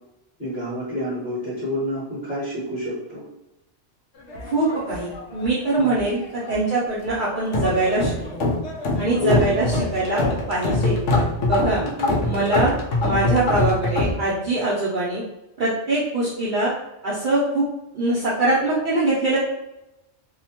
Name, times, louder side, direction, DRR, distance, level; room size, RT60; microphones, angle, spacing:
voice 1, 0.4-3.2 5.8-6.0 9.2-9.6 11.8-12.2, equal, 35° left, -9 dB, 1.3 m, -28 dB
sound 1, 4.3-5.6 5.9-6.6 7.1-14.1, left 2 dB, 80° left, 0.9 m, -24 dB
voice 2, 4.4-6.2 6.5-8.4 9.0-9.7 9.9-10.2 10.5-11.0 11.4-11.8 12.2-12.7 13.0-15.2 15.6-16.7 17.0-17.6 17.9-19.4, right 2 dB, 55° right, -7 dB, 0.6 m, -23 dB
2.8 x 2.1 x 2.8 m, 0.93 s
omnidirectional pair, 1.2 m